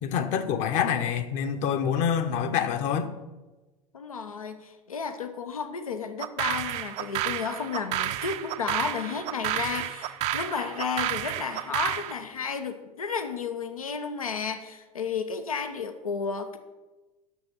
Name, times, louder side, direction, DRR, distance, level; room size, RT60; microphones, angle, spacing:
voice 1, 0.0-3.1, left 8 dB, 45° left, 9 dB, 1.0 m, -26 dB
voice 2, 3.9-16.6, left 5 dB, 75° left, 8 dB, 0.8 m, -32 dB
sound 1, 6.2-12.1, right 13 dB, 40° right, 0.6 m, -31 dB
10.0 x 6.7 x 6.3 m, 1.2 s
figure-of-eight pair, 80°, 18 cm